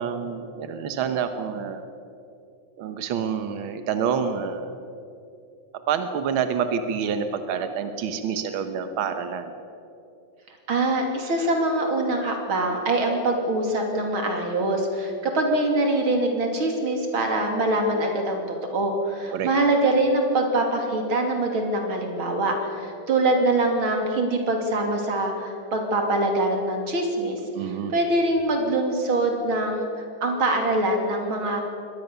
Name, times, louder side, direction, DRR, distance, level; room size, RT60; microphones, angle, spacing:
voice 1, 0.0-1.8 2.8-4.8 5.9-9.5 19.3-19.5 27.5-27.9, right 7 dB, 65° right, 8 dB, 1.3 m, -27 dB
voice 2, 10.7-18.4 18.7-31.6, right 2 dB, 40° right, 2 dB, 3.4 m, -24 dB
23.0 x 19.0 x 6.9 m, 2.6 s
omnidirectional pair, 3.6 m